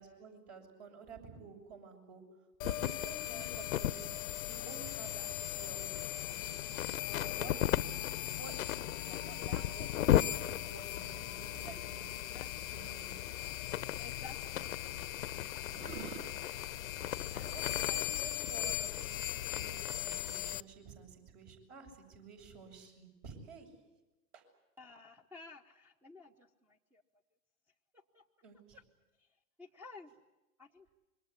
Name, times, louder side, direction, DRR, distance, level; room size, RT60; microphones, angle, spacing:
voice 1, 0.0-2.2 2.6-4.2 4.5-13.5 17.3-23.7 24.3-24.4 28.4-28.8, right 5 dB, 45° right, 3 dB, 7.3 m, -52 dB
sound 1, 2.6-20.6, left 12 dB, 65° left, 0.8 m, -36 dB
voice 2, 3.2-3.6 12.1-13.7 14.0-14.8 24.8-27.0 27.9-28.3 28.7-28.8 29.2-29.3 29.6-30.1 30.6-30.9, left 3 dB, 5° right, 9 dB, 1.0 m, -55 dB
sound 2, 13.2-19.3, right 7 dB, 30° right, 2.3 m, -53 dB
26.5 x 23.0 x 8.3 m, 1.0 s
figure-of-eight pair, 105°, 44 cm